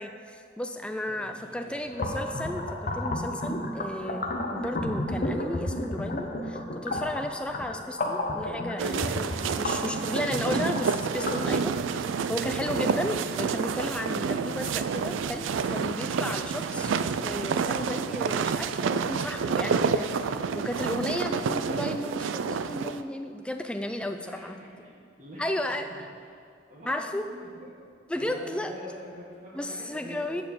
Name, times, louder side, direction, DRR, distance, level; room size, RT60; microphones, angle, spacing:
voice 1, 0.0-20.1 20.5-24.5 25.4-26.1 26.8-27.3 28.1-28.7 29.6-30.4, left 1 dB, 5° left, 6 dB, 0.3 m, -34 dB
voice 2, 1.1-1.8 16.4-16.8 24.2-24.9 25.2-26.4 26.7-27.7 28.1-30.4, equal, 40° right, -8 dB, 1.3 m, -45 dB
sound 1, 1.9-11.4, left 1 dB, 45° left, 0.7 m, -32 dB
sound 2, 8.8-23.0, right 6 dB, 90° right, 0.3 m, -29 dB
7.4 x 4.4 x 6.9 m, 2.3 s
head